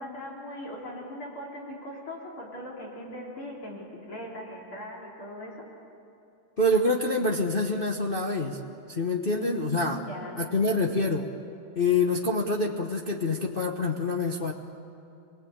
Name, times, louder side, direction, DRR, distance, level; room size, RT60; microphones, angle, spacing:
voice 1, 0.0-5.6 9.3-10.5, equal, 80° left, -3 dB, 4.6 m, -39 dB
voice 2, 6.6-8.6 8.9-10.0 10.4-11.3 11.7-14.5, left 2 dB, 35° left, 0 dB, 1.0 m, -26 dB
27.0 x 19.5 x 8.8 m, 2.7 s
omnidirectional pair, 2.3 m